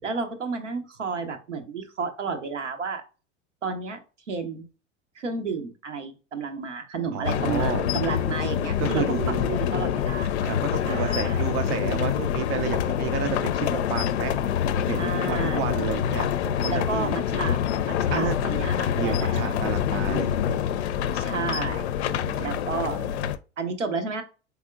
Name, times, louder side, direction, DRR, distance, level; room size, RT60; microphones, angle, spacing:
voice 1, 0.0-3.0 3.6-4.0 4.3-4.7 5.2-9.2 9.5-10.3 10.8-11.5 15.0-15.9 16.7-17.6 17.8-19.4 21.1-21.9 22.4-23.0 23.6-24.2, right 4 dB, 80° right, 6 dB, 0.8 m, -32 dB
voice 2, 7.1-7.9 8.8-9.5 10.4-14.3 14.7-17.5 18.1-18.7 19.0-20.6 22.1-23.1, right 7 dB, 50° right, 8 dB, 0.6 m, -31 dB
sound 1, 7.2-23.4, left 9 dB, 65° left, 0.5 m, -26 dB
4.2 x 3.5 x 2.2 m, 0.32 s
figure-of-eight pair, 80°, 36 cm